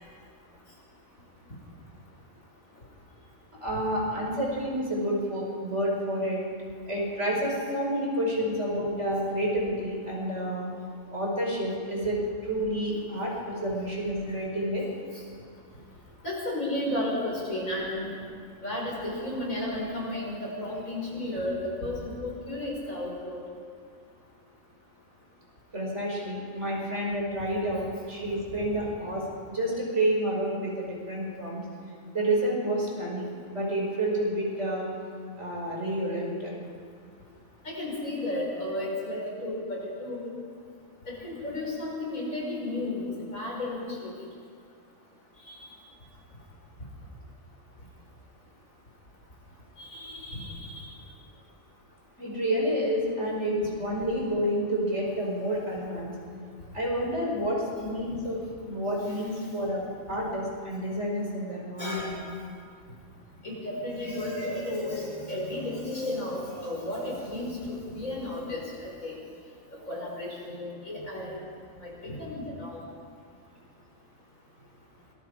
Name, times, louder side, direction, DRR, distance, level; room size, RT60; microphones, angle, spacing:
voice 1, 3.6-6.4 6.9-10.7 11.1-14.9 25.7-31.6 32.1-34.9 35.4-36.5 52.2-56.1 56.7-58.4 58.6-59.8 60.1-62.2, equal, 55° right, -2 dB, 5.6 m, -29 dB
voice 2, 16.2-18.1 18.6-23.4 37.6-40.3 41.1-44.1 45.5-45.7 49.8-50.9 59.1-59.2 61.8-62.2 63.4-69.1 69.7-71.4 71.8-72.8, left 1 dB, 80° left, -3 dB, 6.2 m, -33 dB
26.0 x 21.0 x 5.0 m, 2.2 s
omnidirectional pair, 1.4 m